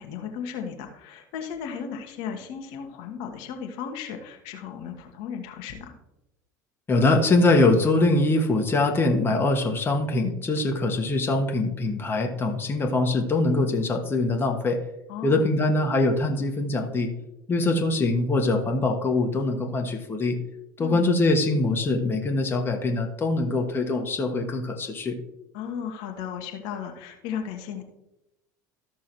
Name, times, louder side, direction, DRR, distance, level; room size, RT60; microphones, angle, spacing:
voice 1, 0.0-5.9 15.1-15.4 20.8-21.0 25.5-27.8, left 7 dB, 55° left, 3 dB, 1.3 m, -35 dB
voice 2, 6.9-14.8 15.2-17.1 17.5-20.4 20.8-25.2, left 2 dB, 25° left, 2 dB, 1.4 m, -23 dB
14.0 x 6.2 x 3.0 m, 0.90 s
figure-of-eight pair, 70°, 10 cm